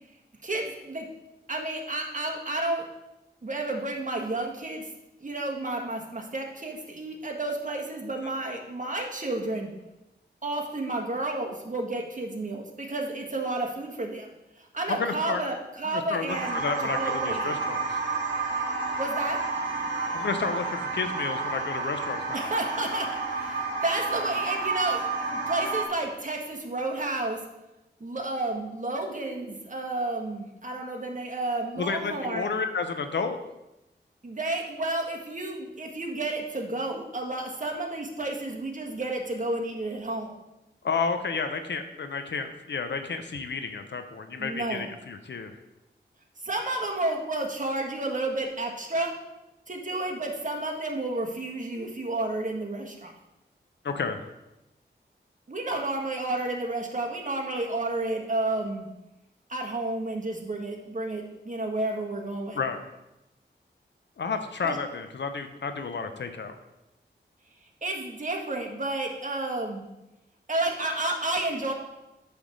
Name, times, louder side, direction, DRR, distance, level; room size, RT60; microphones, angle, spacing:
voice 1, 0.4-1.0 1.5-2.8 3.4-4.9 5.2-9.7 10.4-14.3 14.6-16.6 17.0-17.5 19.0-19.4 22.3-27.4 28.0-32.5 34.2-40.3 44.4-44.9 46.4-49.1 49.7-53.1 55.5-58.9 59.5-62.6 64.6-64.8 67.8-69.9 70.5-71.7, right 2 dB, 45° right, 1 dB, 1.5 m, -31 dB
voice 2, 14.9-15.4 15.8-18.0 20.1-22.5 31.8-33.4 40.8-45.6 53.8-54.2 62.5-62.8 64.2-66.5, left 5 dB, 75° left, 7 dB, 0.7 m, -31 dB
sound 1, 16.3-25.8, right 3 dB, 70° right, 1.9 m, -30 dB
8.8 x 3.5 x 6.3 m, 0.95 s
wide cardioid pair, 70°, 19 cm